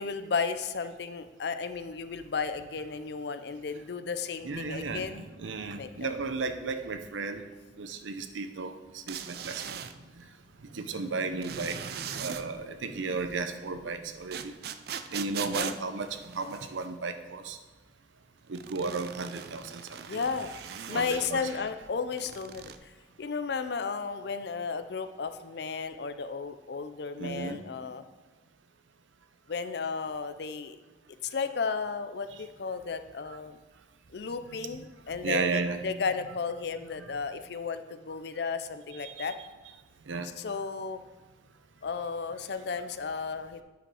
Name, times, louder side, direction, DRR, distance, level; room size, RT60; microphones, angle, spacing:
voice 1, 0.0-5.3 5.6-6.1 15.4-15.8 20.1-20.5 20.9-22.9 23.2-28.0 29.5-30.8 31.2-33.6 34.1-39.4 40.4-41.0 41.8-43.6, left 5 dB, 60° left, 10 dB, 0.5 m, -34 dB
voice 2, 4.4-7.5 7.8-9.8 10.2-10.3 10.6-14.5 15.1-17.6 18.5-20.2 20.8-21.5 27.2-27.6 34.7-34.8 35.1-35.8 37.0-37.1 39.0-39.3 40.1-40.3, right 4 dB, 90° right, 9 dB, 0.7 m, -34 dB
sound 1, 9.1-9.9 11.4-12.4 14.3-16.9 18.5-21.1 22.1-22.8, right 8 dB, 55° right, 0.4 m, -40 dB
9.0 x 5.1 x 4.8 m, 1.2 s
head